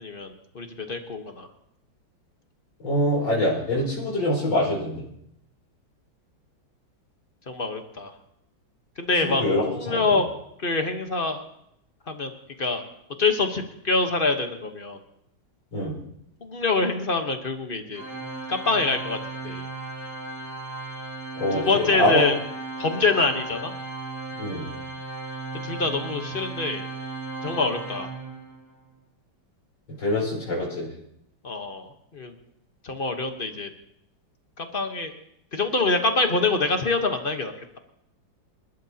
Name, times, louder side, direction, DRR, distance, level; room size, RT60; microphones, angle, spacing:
voice 1, 0.0-1.5 7.5-8.1 9.0-10.3 10.6-11.4 12.1-12.3 12.6-12.8 13.2-15.0 16.4-18.0 18.5-19.2 19.4-19.7 21.5-22.3 22.8-23.7 25.6-26.8 27.4-28.1 31.4-32.3 32.8-33.7 34.6-35.1 35.5-37.8, left 3 dB, 35° left, 6 dB, 1.0 m, -25 dB
voice 2, 2.8-5.1 9.2-10.2 15.7-15.9 21.4-22.3 24.3-24.7 30.0-30.9, left 1 dB, 80° left, -4 dB, 5.7 m, -24 dB
Organ, 17.9-28.7, right 3 dB, 10° right, 3.7 m, -36 dB
28.0 x 12.0 x 2.8 m, 0.75 s
omnidirectional pair, 2.1 m